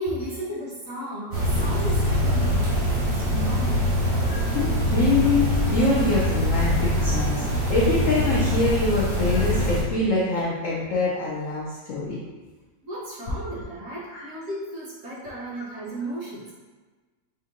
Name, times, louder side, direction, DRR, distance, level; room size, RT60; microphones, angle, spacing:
voice 1, 0.0-3.9 12.8-16.5, right 1 dB, 55° right, -8 dB, 1.0 m, -34 dB
sound 1, 1.3-9.8, equal, 80° right, 1.9 m, -23 dB
voice 2, 4.5-12.2 14.1-14.2 15.3-15.4, left 2 dB, 80° left, -5 dB, 0.7 m, -24 dB
5.3 x 2.8 x 2.5 m, 1.3 s
omnidirectional pair, 2.1 m